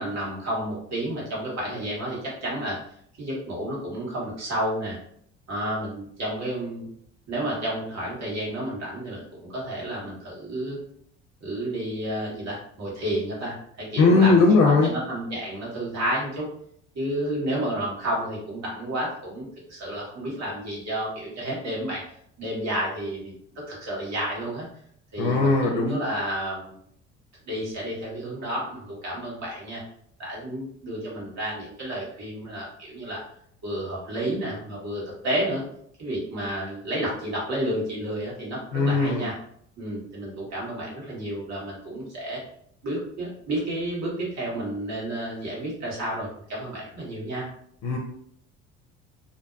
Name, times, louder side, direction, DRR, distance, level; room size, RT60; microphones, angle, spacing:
voice 1, 0.0-2.8 3.2-5.0 5.5-6.9 7.3-10.8 11.4-16.5 16.9-22.0 22.4-23.3 23.7-24.6 25.1-26.8 27.5-29.8 30.2-33.2 33.6-35.6 36.0-39.3 39.8-42.4 42.8-47.5, right 1 dB, 50° right, -4 dB, 1.5 m, -31 dB
voice 2, 14.0-14.9 25.2-26.0 38.7-39.3 47.8-48.0, left 3 dB, 55° left, 1 dB, 0.6 m, -19 dB
2.6 x 2.2 x 2.5 m, 0.67 s
hypercardioid pair, 65°, 36 cm